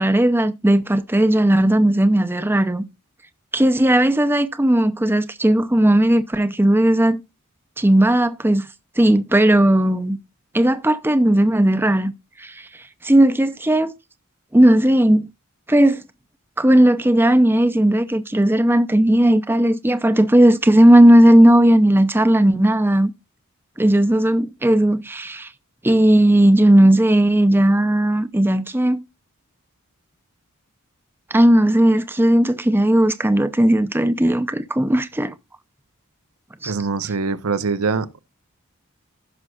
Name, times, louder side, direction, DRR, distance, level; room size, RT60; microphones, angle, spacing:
voice 1, 0.0-2.8 3.5-7.2 7.8-8.7 9.0-10.2 10.5-12.1 12.4-12.7 13.0-13.9 14.5-15.3 15.7-16.0 16.6-23.1 23.8-25.5 25.8-29.0 31.3-35.3 36.6-36.7, right 1 dB, 10° right, 0.6 m, -16 dB
voice 2, 36.6-38.2, right 4 dB, 85° right, 0.8 m, -23 dB
16.0 x 6.2 x 2.4 m
head